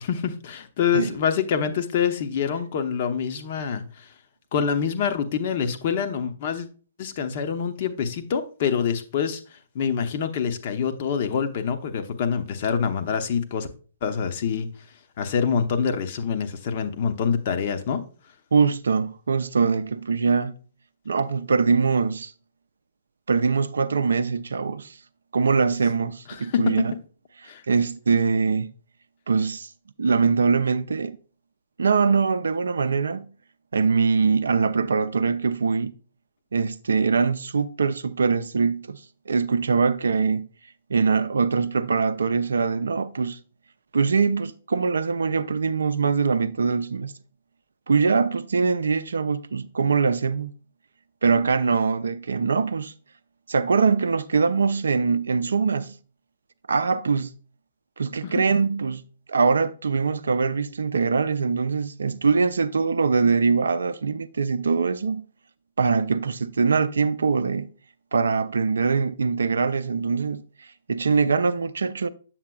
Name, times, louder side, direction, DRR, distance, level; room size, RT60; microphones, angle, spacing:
voice 1, 0.0-4.1 4.5-6.7 7.0-13.7 14.0-14.7 15.2-18.0 26.4-26.8 27.5-27.6 58.2-58.3, left 7 dB, 40° left, 0.7 m, -26 dB
voice 2, 18.5-20.5 21.1-22.3 23.3-25.0 25.3-26.9 27.7-28.7 29.3-29.7 30.0-31.2 31.8-33.3 33.7-35.9 36.5-40.5 40.9-43.4 43.9-47.1 47.9-50.5 51.2-52.9 53.5-55.9 56.7-57.3 58.0-59.0 59.3-65.2 65.8-67.7 68.1-72.1, right 5 dB, 65° right, 0.4 m, -23 dB
7.4 x 7.4 x 2.3 m
figure-of-eight pair, 120°, 0 cm